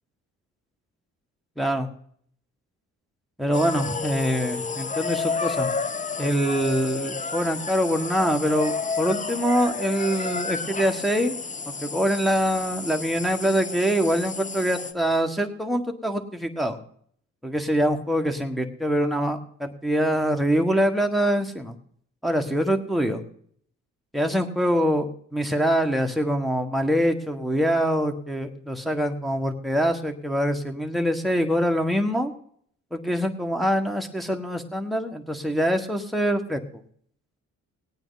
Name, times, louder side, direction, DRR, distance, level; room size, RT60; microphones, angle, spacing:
voice 1, 1.6-1.9 3.4-5.7 6.2-11.3 11.7-16.8 17.4-21.8 22.2-23.2 24.1-25.0 25.3-32.3 32.9-36.6, equal, ahead, 3 dB, 1.5 m, -24 dB
sound 1, 3.5-14.9, left 4 dB, 25° left, 0.8 m, -31 dB
19.0 x 8.9 x 4.1 m, 0.62 s
cardioid pair, 90°, 30 cm